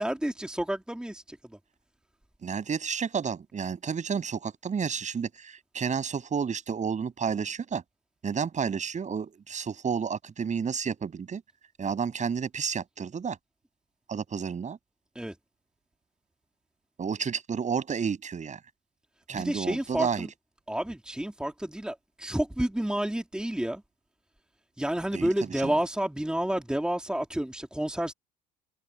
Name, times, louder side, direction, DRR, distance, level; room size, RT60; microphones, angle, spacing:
voice 1, 0.0-1.4 15.1-15.3 19.3-20.3 20.7-23.8 24.8-28.1, right 1 dB, 5° right, 3.0 m, -30 dB
voice 2, 2.4-7.8 8.2-11.4 11.8-13.4 14.1-14.8 17.0-18.6 19.3-20.3 25.1-25.7, right 6 dB, 35° right, 8.0 m, -31 dB
hypercardioid pair, 75°, 21 cm